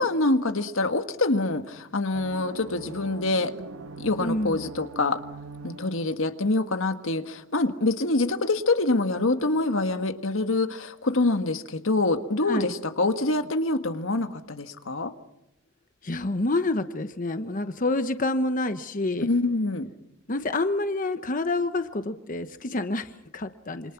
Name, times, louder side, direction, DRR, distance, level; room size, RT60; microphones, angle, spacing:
voice 1, 0.0-3.5 4.0-5.2 5.6-15.1 19.2-19.9, left 2 dB, 85° left, 8 dB, 1.7 m, -25 dB
sound 1, 2.1-6.5, right 3 dB, 90° right, 1.5 m, -42 dB
voice 2, 4.2-4.6 12.5-12.7 16.0-19.3 20.3-23.9, left 2 dB, 40° left, 9 dB, 1.0 m, -28 dB
27.5 x 26.5 x 6.0 m, 0.88 s
head